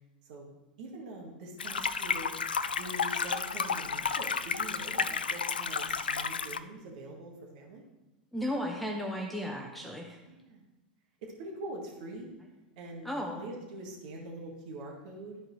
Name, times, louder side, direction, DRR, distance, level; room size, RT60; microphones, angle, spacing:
voice 1, 0.8-2.3 2.7-7.8 10.3-10.6 11.2-12.3 12.8-15.4, right 2 dB, 55° right, -1 dB, 1.8 m, -44 dB
sound 1, 1.6-6.6, left 6 dB, 80° left, 0.4 m, -32 dB
voice 2, 8.3-10.2 13.0-13.4, equal, ahead, 0 dB, 0.9 m, -34 dB
12.5 x 4.8 x 3.2 m, 1.1 s
figure-of-eight pair, 95°, 5 cm